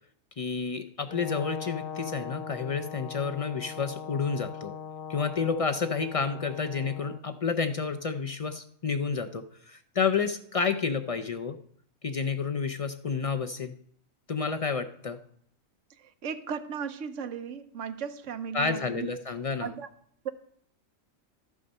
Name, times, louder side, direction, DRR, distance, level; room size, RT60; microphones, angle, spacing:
voice 1, 0.4-4.7 5.1-11.6 12.0-13.7 14.3-15.2 18.5-19.7, left 5 dB, 60° left, 8 dB, 0.3 m, -30 dB
Brass instrument, 1.1-7.2, left 7 dB, 85° left, 1.2 m, -40 dB
voice 2, 15.9-19.1 19.6-19.9 20.2-20.3, right 7 dB, 70° right, 9 dB, 1.1 m, -36 dB
12.0 x 7.2 x 5.3 m, 0.64 s
omnidirectional pair, 1.4 m